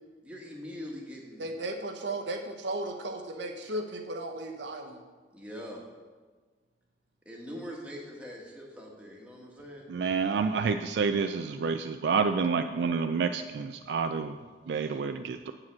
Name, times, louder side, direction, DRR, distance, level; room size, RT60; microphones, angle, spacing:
voice 1, 0.2-1.4 5.3-5.8 7.2-9.9, equal, 5° right, -2 dB, 1.2 m, -42 dB
voice 2, 1.4-5.0, right 1 dB, 85° right, 3 dB, 1.0 m, -35 dB
voice 3, 9.9-14.4 14.7-15.5, right 5 dB, 70° right, 8 dB, 0.3 m, -28 dB
7.7 x 4.9 x 7.3 m, 1.4 s
head